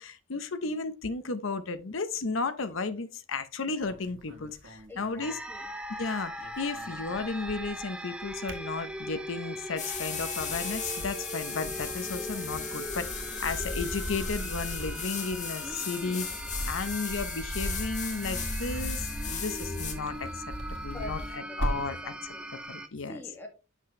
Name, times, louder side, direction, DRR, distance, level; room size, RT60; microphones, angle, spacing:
voice 1, 0.0-5.4 6.0-16.3 16.7-20.4 20.8-22.1 22.7-23.2, left 4 dB, 85° left, 0.8 m, -34 dB
sound 1, 3.8-6.0 6.3-7.9 8.2-9.3 9.8-22.0, equal, 70° right, 1.9 m, -39 dB
voice 2, 4.9-5.7 15.6-16.4 20.9-22.8 23.1-23.5, left 1 dB, 10° left, 2.0 m, -46 dB
sound 2, 5.2-22.9, right 1 dB, 5° right, 0.6 m, -40 dB
sound 3, 9.8-19.9, left 7 dB, 40° left, 1.4 m, -37 dB
7.8 x 6.2 x 3.2 m
head